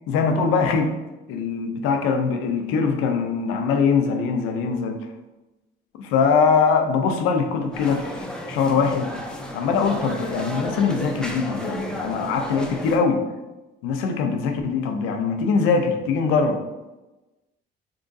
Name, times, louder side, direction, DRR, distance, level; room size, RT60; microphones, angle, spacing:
voice 1, 0.1-0.9 1.3-5.0 6.0-9.1 9.5-13.2 13.8-16.6, left 5 dB, 90° left, 5 dB, 0.5 m, -22 dB
sound 1, 7.7-13.0, equal, 5° left, 0.5 m, -33 dB
3.7 x 2.6 x 2.6 m, 1.0 s
supercardioid pair, 75°, 21 cm